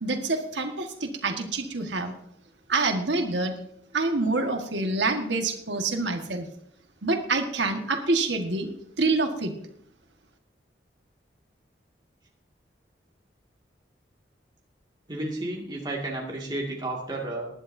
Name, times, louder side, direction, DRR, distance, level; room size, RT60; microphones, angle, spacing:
voice 1, 0.0-2.1 2.7-3.5 3.9-6.5 7.0-8.7 9.0-9.5, right 3 dB, 85° right, 4 dB, 1.6 m, -26 dB
voice 2, 15.1-17.5, right 2 dB, 25° right, -2 dB, 2.1 m, -32 dB
20.0 x 11.0 x 2.7 m, 0.72 s
head